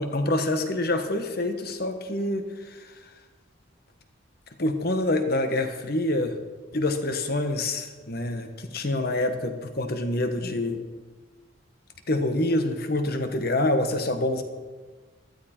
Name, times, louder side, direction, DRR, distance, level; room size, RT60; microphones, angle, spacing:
voice 1, 0.0-3.1 4.6-6.4 6.7-10.8 12.1-14.4, left 1 dB, 50° left, 7 dB, 1.2 m, -26 dB
15.5 x 12.5 x 4.4 m, 1.4 s
head